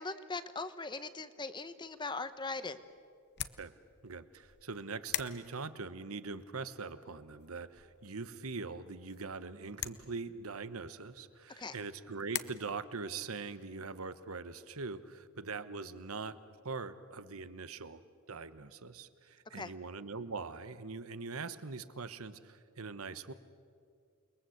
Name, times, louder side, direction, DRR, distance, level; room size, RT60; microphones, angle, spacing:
voice 1, 0.0-2.8 11.6-11.8 19.5-19.7, left 3 dB, 20° left, 12 dB, 1.0 m, -40 dB
sound 1, 1.9-12.4, left 12 dB, 50° left, 0.9 m, -46 dB
voice 2, 4.0-16.4 16.6-18.0 18.3-23.3, right 4 dB, 75° right, 13 dB, 1.1 m, -42 dB
29.0 x 22.0 x 8.0 m, 2.3 s
head